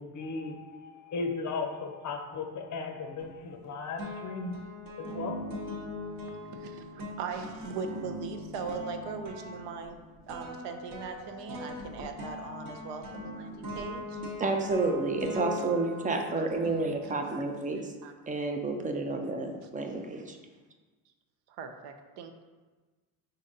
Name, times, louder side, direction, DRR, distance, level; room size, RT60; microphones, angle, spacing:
voice 1, 0.0-4.6 5.0-5.4, left 4 dB, 45° left, 3 dB, 0.6 m, -36 dB
sound 1, 3.2-3.7 4.0-17.4, left 2 dB, 50° right, 1.0 m, -41 dB
voice 2, 6.5-6.8 7.2-10.0 10.3-14.2 16.1-18.1 21.5-22.4, right 5 dB, 75° right, 6 dB, 0.6 m, -40 dB
voice 3, 14.4-17.9 18.3-20.4, right 3 dB, 20° right, 4 dB, 0.4 m, -30 dB
3.9 x 2.7 x 3.8 m, 1.3 s
supercardioid pair, 85°, 43 cm